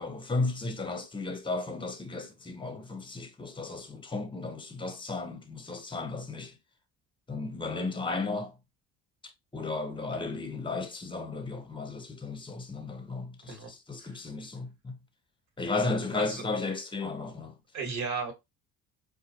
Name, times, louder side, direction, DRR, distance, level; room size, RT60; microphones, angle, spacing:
voice 1, 0.0-6.6 7.3-8.6 9.5-15.0 15.6-17.6, left 3 dB, 15° left, 0.9 m, -34 dB
voice 2, 17.7-18.3, right 5 dB, 60° right, 1.6 m, -34 dB
4.3 x 2.3 x 2.8 m
cardioid pair, 105°, 32 cm